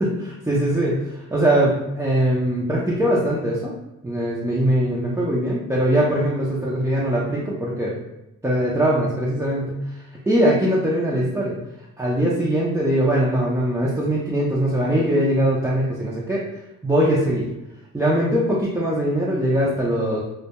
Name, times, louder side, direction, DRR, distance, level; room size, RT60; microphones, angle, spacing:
voice 1, 0.0-1.0 1.3-3.7 4.0-7.9 8.4-9.7 10.3-11.5 12.0-16.4 16.8-17.5 17.9-20.2, right 1 dB, 10° right, -7 dB, 0.4 m, -21 dB
2.2 x 2.2 x 2.8 m, 0.93 s
cardioid pair, 90°, 30 cm